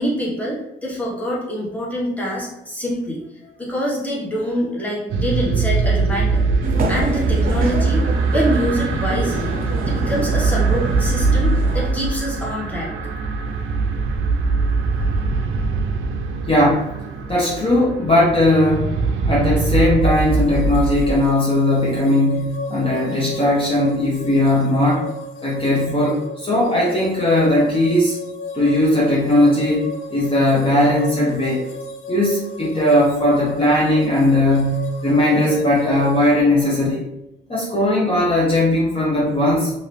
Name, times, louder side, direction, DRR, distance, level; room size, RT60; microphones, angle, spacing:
voice 1, 0.0-3.2 3.6-6.4 6.9-12.9, equal, 10° left, -5 dB, 1.2 m, -25 dB
sound 1, 5.1-21.2, right 4 dB, 85° right, 0.4 m, -22 dB
sound 2, 6.6-11.9, right 2 dB, 45° right, 0.6 m, -26 dB
voice 2, 16.5-17.0 17.3-18.9 19.3-25.1 25.4-28.2 28.5-31.6 32.1-37.0 37.5-39.7, left 1 dB, 25° left, -6 dB, 0.9 m, -18 dB
sound 3, 20.0-36.4, left 2 dB, 85° left, 0.5 m, -33 dB
2.7 x 2.6 x 3.3 m, 0.89 s
cardioid pair, 90°, 20 cm